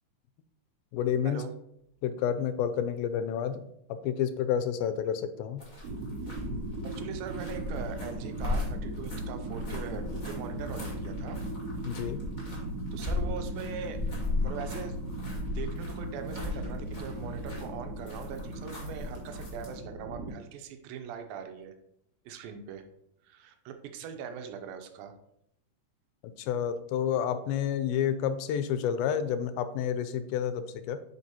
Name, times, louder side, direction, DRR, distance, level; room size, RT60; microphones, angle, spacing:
voice 1, 0.9-1.4 2.0-5.6 11.8-12.3 26.4-31.0, left 8 dB, 90° left, 11 dB, 2.4 m, -30 dB
sound 1, 5.6-19.7, left 2 dB, 25° left, 1.0 m, -37 dB
sound 2, 5.8-20.3, right 1 dB, 70° right, 2.1 m, -38 dB
voice 2, 6.9-11.4 12.9-14.0 14.4-15.0 15.5-21.7 22.3-22.9 23.2-25.2, right 7 dB, 90° right, 6 dB, 2.4 m, -41 dB
8.0 x 5.3 x 2.9 m, 0.77 s
omnidirectional pair, 4.1 m